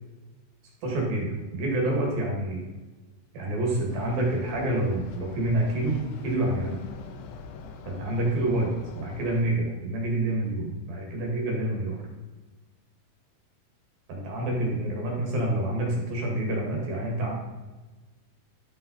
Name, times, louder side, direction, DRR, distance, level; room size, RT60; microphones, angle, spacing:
voice 1, 0.8-2.6 3.3-6.8 7.8-12.0 14.1-17.3, right 1 dB, 55° right, -2 dB, 3.4 m, -27 dB
sound 1, 3.9-9.4, left 5 dB, 80° left, 3.0 m, -43 dB
11.5 x 5.8 x 4.1 m, 1.2 s
omnidirectional pair, 5.8 m